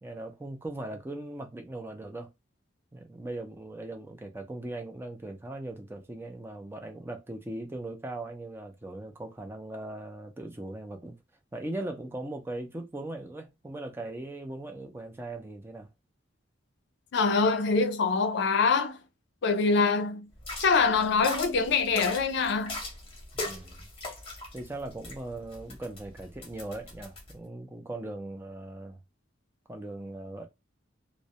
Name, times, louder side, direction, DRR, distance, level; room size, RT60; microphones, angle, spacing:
voice 1, 0.0-2.3 2.9-11.1 11.5-15.9 23.3-23.9 24.5-29.0 29.7-30.5, right 2 dB, 10° right, 0.4 m, -39 dB
voice 2, 17.1-19.0 19.4-20.3 20.6-22.8, left 4 dB, 65° left, 0.4 m, -24 dB
sound 1, 20.4-27.3, left 2 dB, 30° left, 0.7 m, -40 dB
2.2 x 2.0 x 2.7 m
head